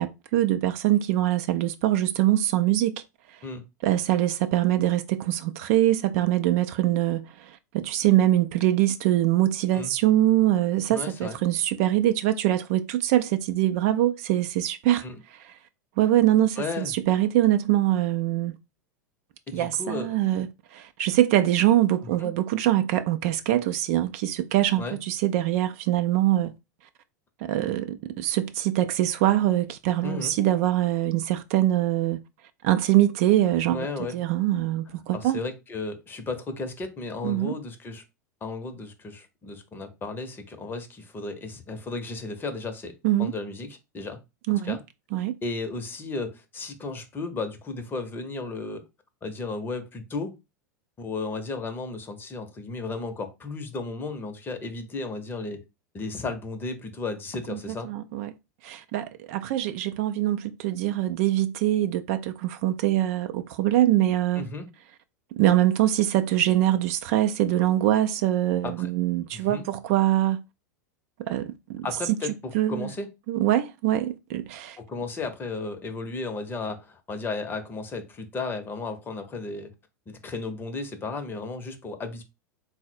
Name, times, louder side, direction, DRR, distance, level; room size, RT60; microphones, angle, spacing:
voice 1, 0.0-3.0 3.8-15.0 16.0-18.6 19.5-26.5 27.4-32.2 32.6-33.9 34.1-35.4 37.2-37.5 43.0-43.3 44.5-44.8 45.1-45.3 57.5-57.6 57.9-58.3 58.6-64.5 65.3-70.4 71.3-71.9 72.5-72.9 73.3-74.8, right 13 dB, 50° right, 0.4 m, -23 dB
voice 2, 10.9-11.4 15.0-15.2 16.6-16.9 19.5-20.1 22.2-22.3 24.8-25.0 30.0-30.3 33.7-34.2 35.1-38.0 38.4-44.2 44.6-44.8 45.4-48.8 49.2-50.4 51.0-55.6 55.9-57.9 64.4-64.7 68.6-68.9 69.3-69.6 71.8-73.1 74.8-79.7 80.1-82.2, left 3 dB, 20° left, 0.7 m, -34 dB
3.8 x 2.1 x 4.3 m
figure-of-eight pair, 90°, 10 cm